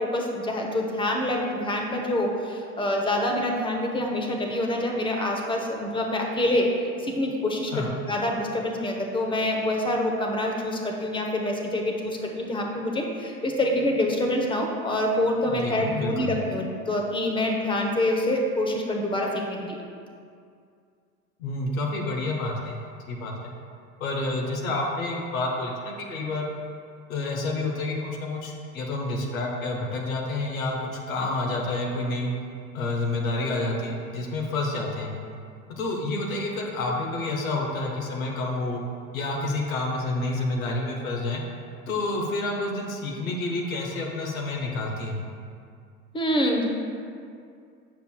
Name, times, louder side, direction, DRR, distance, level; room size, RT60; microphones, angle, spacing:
voice 1, 0.0-19.8 46.1-46.6, left 1 dB, 10° left, 1 dB, 0.7 m, -26 dB
voice 2, 15.5-16.3 21.4-23.5 24.0-26.5 27.1-32.3 32.7-35.1 35.7-38.8 39.1-41.4 41.9-45.2, left 2 dB, 65° left, 0 dB, 1.1 m, -29 dB
8.1 x 6.7 x 2.2 m, 2.3 s
figure-of-eight pair, 80°, 44 cm